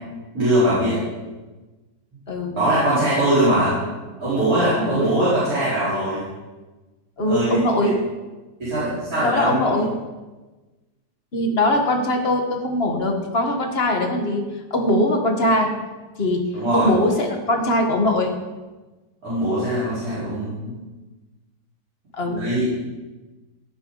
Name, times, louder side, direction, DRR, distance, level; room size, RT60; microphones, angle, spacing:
voice 1, 0.3-1.0 2.5-3.8 4.2-6.2 7.3-7.5 7.8-7.9 8.6-9.8 16.5-16.9 19.2-20.7 22.3-22.7, right 1 dB, 55° right, -12 dB, 5.0 m, -21 dB
voice 2, 7.2-8.0 9.2-9.9 11.3-14.4 14.7-15.7 16.2-16.4 16.7-18.3 22.1-22.4, left 1 dB, 35° left, 2 dB, 1.7 m, -21 dB
17.0 x 8.8 x 4.0 m, 1.2 s
omnidirectional pair, 1.9 m